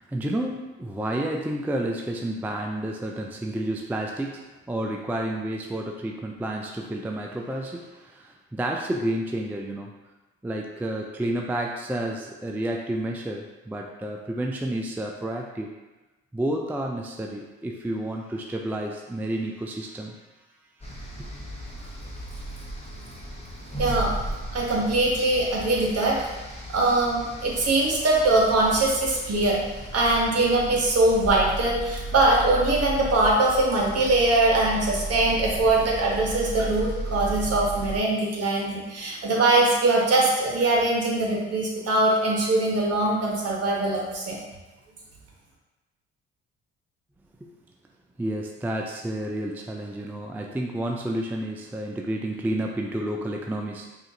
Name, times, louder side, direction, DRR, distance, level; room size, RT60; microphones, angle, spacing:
voice 1, 0.0-10.0 10.4-15.8 16.3-20.2 47.4-47.5 48.2-53.9, right 1 dB, 5° right, 1 dB, 0.4 m, -30 dB
sound 1, 20.8-38.0, right 1 dB, 20° left, 1.1 m, -35 dB
voice 2, 23.8-24.1 24.5-26.2 26.7-29.6 29.9-44.4, right 2 dB, 50° right, -2 dB, 1.2 m, -22 dB
4.9 x 2.5 x 2.8 m, 1.1 s
hypercardioid pair, 55°, 32 cm